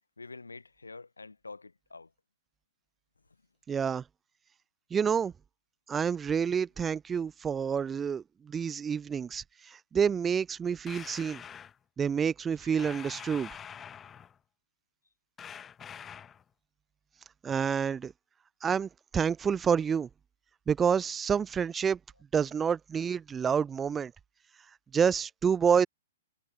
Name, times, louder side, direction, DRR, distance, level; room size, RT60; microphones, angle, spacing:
voice 1, 0.2-2.1 12.6-12.9, left 3 dB, 75° left, 4.8 m, -47 dB
voice 2, 3.7-4.0 4.9-5.3 5.9-11.4 12.0-13.5 17.4-18.1 18.6-20.1 20.7-22.0 22.3-24.1 24.9-25.9, right 7 dB, 15° right, 1.7 m, -28 dB
sound 1, 10.9-11.7 12.8-14.4 15.4-16.4, left 8 dB, 15° left, 2.8 m, -45 dB
figure-of-eight pair, 110°, 0 cm